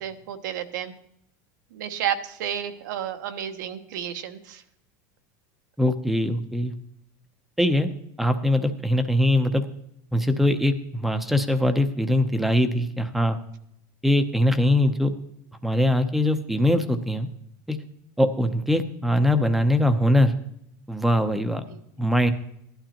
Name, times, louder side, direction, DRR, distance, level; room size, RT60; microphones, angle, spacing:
voice 1, 0.0-0.9 1.7-4.6 21.7-21.8, right 9 dB, 85° right, 8 dB, 1.1 m, -31 dB
voice 2, 5.8-6.7 7.6-7.9 8.2-9.7 10.1-13.4 14.0-15.1 15.6-17.3 17.7-17.8 18.2-20.3 20.9-21.6 22.0-22.3, left 1 dB, ahead, 8 dB, 0.7 m, -22 dB
16.0 x 11.5 x 2.9 m, 0.76 s
supercardioid pair, 160°, 10 cm